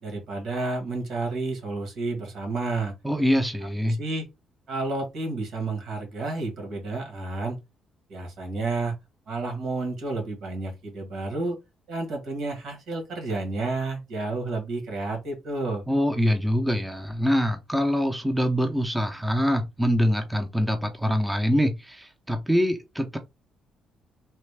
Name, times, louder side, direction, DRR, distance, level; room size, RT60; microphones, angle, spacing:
voice 1, 0.0-2.9 3.8-4.3 4.7-7.6 8.1-8.9 9.3-11.6 11.9-15.8, right 3 dB, 70° right, 1.6 m, -30 dB
voice 2, 3.0-4.0 15.9-23.2, equal, 5° right, 0.6 m, -24 dB
3.2 x 2.3 x 3.3 m
cardioid pair, 95°, 0 cm